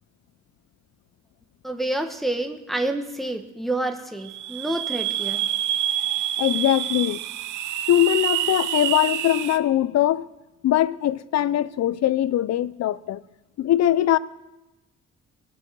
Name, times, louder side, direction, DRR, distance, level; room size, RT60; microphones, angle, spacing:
voice 1, 1.6-5.5, right 1 dB, ahead, 1.2 m, -28 dB
sound 1, 4.2-9.6, right 11 dB, 80° right, 0.9 m, -27 dB
voice 2, 6.4-7.2 7.9-10.3 10.6-13.2 13.6-14.2, left 12 dB, 60° left, 0.6 m, -21 dB
19.0 x 8.9 x 6.2 m
cardioid pair, 90°, 30 cm